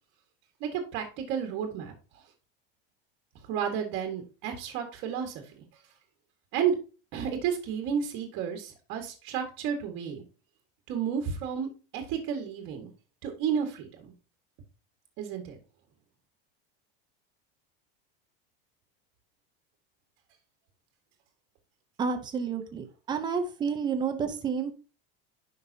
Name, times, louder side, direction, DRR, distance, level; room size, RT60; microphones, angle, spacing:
voice 1, 0.6-1.9 3.5-5.6 6.5-6.7 7.1-10.2 10.9-12.9 13.2-14.1 15.2-15.6, right 8 dB, 40° right, 4 dB, 1.6 m, -32 dB
voice 2, 22.0-24.7, right 6 dB, 15° right, 6 dB, 0.6 m, -30 dB
9.7 x 5.4 x 2.8 m, 0.33 s
cardioid pair, 170°, 29 cm